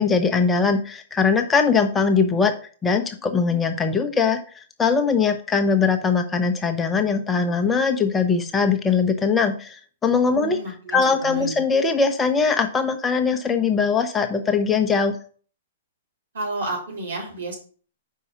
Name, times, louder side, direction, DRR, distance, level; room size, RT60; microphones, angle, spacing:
voice 1, 0.0-2.5 2.8-10.6 10.9-15.2, left 5 dB, 15° left, 6 dB, 0.7 m, -21 dB
voice 2, 10.5-11.6 16.3-17.5, right 2 dB, 70° right, -3 dB, 3.4 m, -31 dB
5.5 x 4.6 x 5.5 m, 0.43 s
figure-of-eight pair, 110°, 0 cm